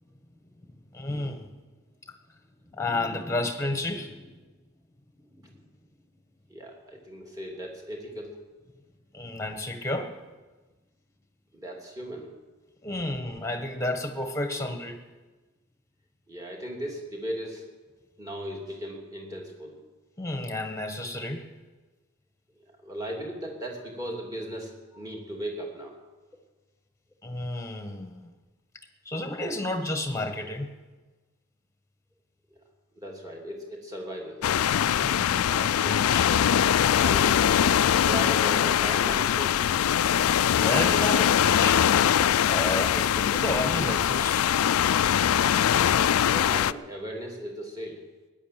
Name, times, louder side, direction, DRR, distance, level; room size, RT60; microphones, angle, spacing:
voice 1, 0.9-1.5 2.7-4.4 5.3-5.5 9.1-10.1 12.8-15.0 20.2-21.4 27.2-28.3 29.0-30.7 35.0-36.3 40.6-42.2 42.5-44.5, left 1 dB, 15° left, 6 dB, 1.3 m, -31 dB
voice 2, 6.5-8.4 11.5-12.3 16.3-17.6 18.2-19.8 22.5-26.0 32.5-32.6 33.0-34.4 37.0-37.7 38.0-39.8 46.3-48.0, equal, 15° right, 0 dB, 2.6 m, -37 dB
sound 1, 34.4-46.7, left 9 dB, 90° left, 0.4 m, -22 dB
17.0 x 10.5 x 7.6 m, 1.2 s
head